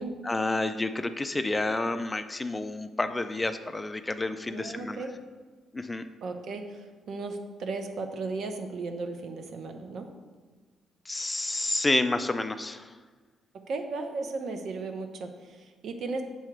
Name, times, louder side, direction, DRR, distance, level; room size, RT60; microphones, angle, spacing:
voice 1, 0.2-5.0 5.7-6.0 11.1-13.0, left 2 dB, 20° left, 10 dB, 0.3 m, -29 dB
voice 2, 4.5-5.2 6.2-10.1 13.5-16.2, right 3 dB, 65° right, 6 dB, 0.7 m, -35 dB
6.9 x 2.9 x 5.8 m, 1.4 s
cardioid pair, 90°, 0 cm